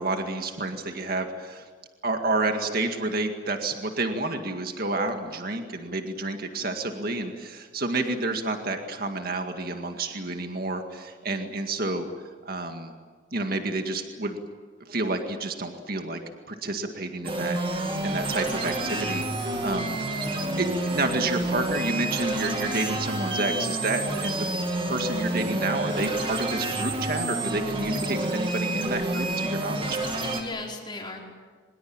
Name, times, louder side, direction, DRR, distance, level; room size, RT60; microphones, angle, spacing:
voice 1, 0.0-1.6 2.0-12.1 12.4-12.9 13.3-14.4 14.9-16.2 16.5-20.0 20.6-24.5 24.9-30.0, right 2 dB, 50° right, 5 dB, 2.0 m, -29 dB
voice 2, 6.6-7.1 7.9-8.2 18.3-18.7 30.2-31.2, left 2 dB, 25° left, -1 dB, 4.8 m, -38 dB
sound 1, 17.2-30.4, right 1 dB, 25° right, 2.6 m, -29 dB
24.5 x 21.5 x 8.9 m, 1.5 s
head